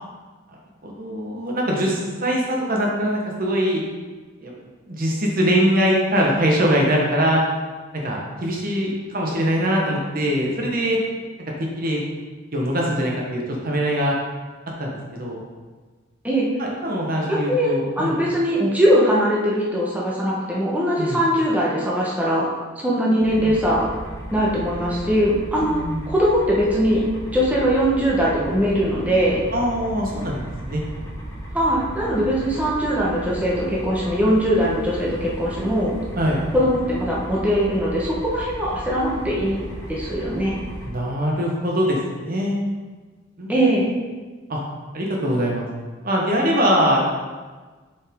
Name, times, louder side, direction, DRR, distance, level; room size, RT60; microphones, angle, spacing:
voice 1, 0.8-3.8 4.4-4.5 4.9-7.4 8.0-11.0 11.6-12.0 12.5-14.2 14.8-15.4 16.6-18.2 21.0-21.2 23.1-23.6 25.6-26.1 29.5-30.8 32.1-32.3 36.2-36.4 40.8-42.5 43.4-43.5 44.5-44.6 44.9-45.6 46.0-47.0, equal, 45° right, -2 dB, 1.2 m, -22 dB
voice 2, 17.3-22.5 22.8-23.9 24.3-25.8 26.1-27.0 27.3-29.4 31.5-35.9 36.5-39.6 39.9-40.6 43.5-43.9, equal, 10° right, -5 dB, 1.2 m, -21 dB
sound 1, 23.2-40.9, right 1 dB, 15° left, 2.2 m, -35 dB
7.3 x 5.4 x 3.7 m, 1.4 s
head